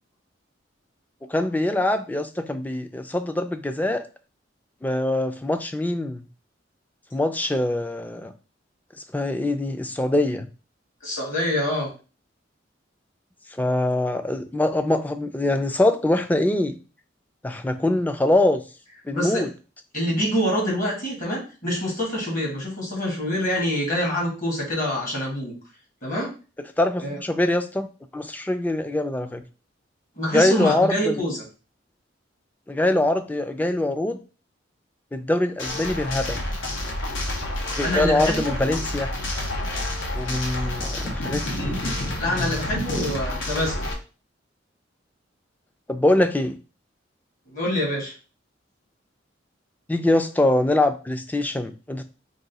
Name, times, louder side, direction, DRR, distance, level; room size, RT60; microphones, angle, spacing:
voice 1, 1.3-4.0 4.8-6.2 7.1-8.3 9.1-10.5 13.6-16.8 17.4-18.6 19.1-19.5 26.8-27.9 28.1-29.4 30.3-31.2 32.7-34.2 35.1-36.4 37.8-39.1 40.2-41.9 45.9-46.6 49.9-52.0, left 1 dB, 10° left, 7 dB, 0.3 m, -23 dB
voice 2, 11.0-11.9 19.1-19.4 19.9-25.6 26.0-26.3 27.0-27.2 30.2-31.4 37.8-38.5 42.2-43.7 47.5-48.1, equal, 45° left, -2 dB, 1.6 m, -26 dB
sound 1, 35.6-43.9, left 1 dB, 90° left, 1.0 m, -29 dB
3.7 x 2.3 x 4.0 m, 0.34 s
head